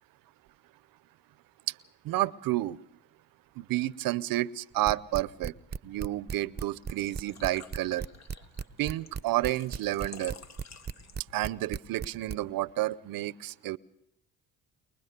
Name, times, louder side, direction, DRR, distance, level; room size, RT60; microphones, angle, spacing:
voice 1, 2.0-2.8 3.6-5.5 5.8-8.1 8.8-10.4 11.3-13.8, right 16 dB, 70° right, 20 dB, 0.7 m, -30 dB
sound 1, 4.8-12.4, right 6 dB, 25° right, 0.8 m, -35 dB
Engine / Trickle dribble / Fill (with liquid), 6.7-11.5, left 5 dB, 45° left, 1.4 m, -51 dB
23.0 x 21.0 x 6.7 m, 0.79 s
supercardioid pair, 65°, 36 cm